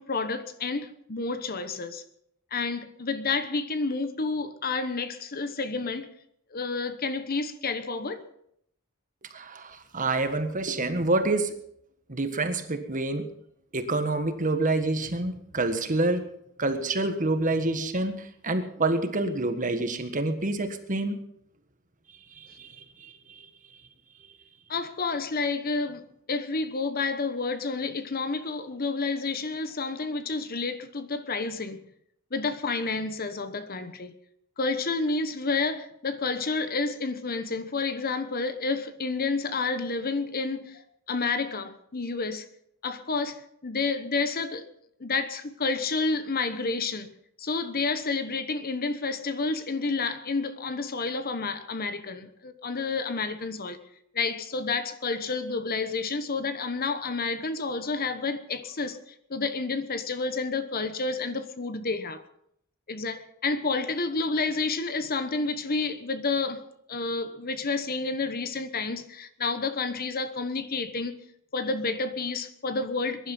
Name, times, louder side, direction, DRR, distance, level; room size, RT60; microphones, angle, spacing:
voice 1, 0.0-2.0 2.5-6.1 6.5-8.2 24.7-31.8 32.3-34.1 34.6-40.8 41.1-42.5 42.8-44.6 45.0-47.1 47.4-53.8 54.1-62.2 62.9-66.6 66.9-71.2 71.5-73.3, left 4 dB, 45° left, 1.1 m, -30 dB
voice 2, 9.3-11.5 12.1-13.3 13.7-16.3 16.6-21.2 22.4-22.7 23.0-23.5, right 2 dB, 40° right, 1.6 m, -27 dB
21.5 x 11.0 x 5.5 m
head